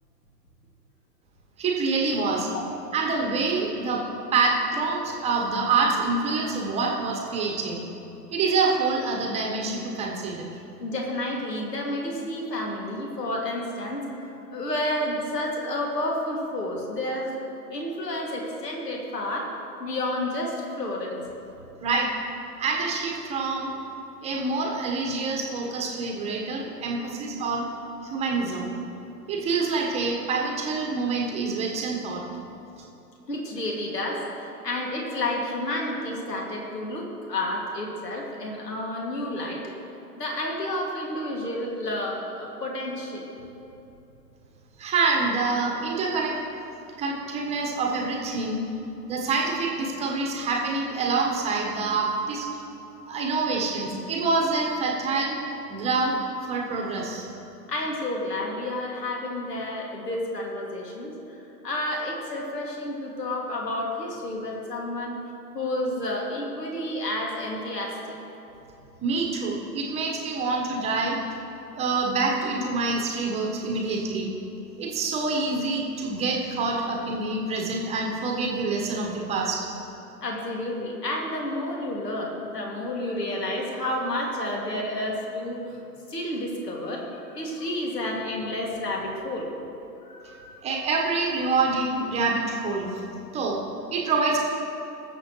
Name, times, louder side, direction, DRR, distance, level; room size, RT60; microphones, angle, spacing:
voice 1, 1.6-2.5 2.9-4.0 4.3-7.8 8.3-10.5 21.8-22.1 22.6-23.8 24.2-27.7 28.0-28.7 29.3-32.2 44.8-46.4 47.0-48.6 49.1-52.5 53.1-55.4 55.7-57.3 69.0-71.2 71.7-74.3 74.8-79.7 90.6-93.0 93.3-93.6 93.9-94.4, right 3 dB, 15° right, -1 dB, 1.2 m, -26 dB
voice 2, 10.8-17.4 17.7-19.5 19.8-21.2 33.3-39.6 40.2-43.3 57.7-61.4 61.6-65.2 65.5-68.2 80.2-85.8 86.1-89.5 90.0-90.6, left 1 dB, 70° left, -1 dB, 2.4 m, -30 dB
20.0 x 7.2 x 3.1 m, 3.0 s
figure-of-eight pair, 125°, 50 cm